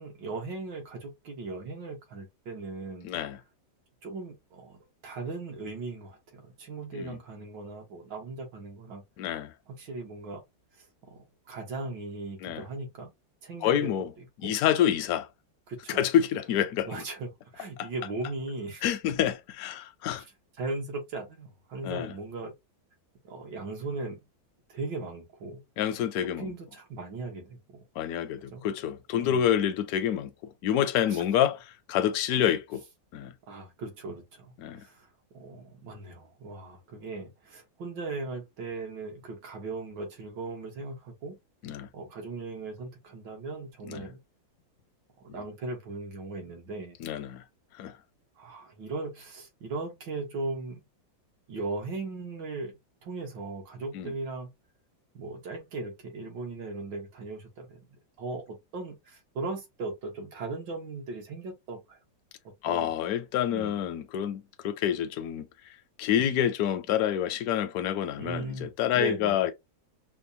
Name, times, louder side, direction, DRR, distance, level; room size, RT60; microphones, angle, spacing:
voice 1, 0.0-3.1 4.0-9.0 9.7-10.4 10.8-13.1 13.4-13.9 14.4-14.6 15.7-16.0 16.9-18.8 20.6-22.5 23.2-24.2 24.7-25.6 26.2-27.8 28.5-28.6 29.2-29.4 31.1-31.2 33.5-34.5 34.8-35.1 35.3-41.4 41.9-44.2 45.2-47.0 48.4-50.8 51.5-54.5 55.1-57.9 58.2-62.0 62.7-62.9 63.5-63.8 68.2-68.7 68.9-69.4, right 3 dB, 70° right, 1.8 m, -38 dB
voice 2, 3.0-3.4 6.9-7.2 9.2-9.5 12.4-12.6 13.6-14.1 14.4-15.3 15.9-17.0 17.8-17.9 18.8-20.2 21.8-22.1 25.8-26.5 28.0-32.8 33.1-33.3 34.6-34.8 41.6-41.9 43.9-44.1 47.0-47.4 47.8-48.0 53.9-54.1 62.6-69.5, left 10 dB, 70° left, 0.9 m, -28 dB
5.1 x 2.1 x 2.6 m
omnidirectional pair, 2.1 m